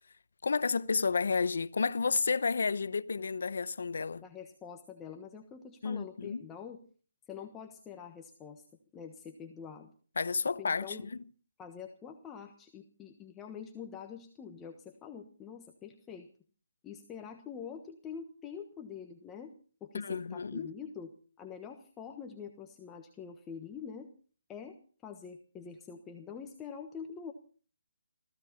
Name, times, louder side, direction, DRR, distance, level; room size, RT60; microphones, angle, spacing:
voice 1, 0.4-4.2 5.8-6.5 10.2-11.2 19.9-20.7, left 5 dB, 75° left, 0.9 m, -31 dB
voice 2, 4.2-6.8 7.3-8.6 8.9-9.9 10.6-11.0 11.6-16.3 16.8-19.5 19.8-21.1 21.4-24.1 24.5-24.7 25.0-27.3, left 7 dB, 15° left, 1.3 m, -45 dB
20.5 x 15.5 x 4.2 m
hypercardioid pair, 160°, 0 cm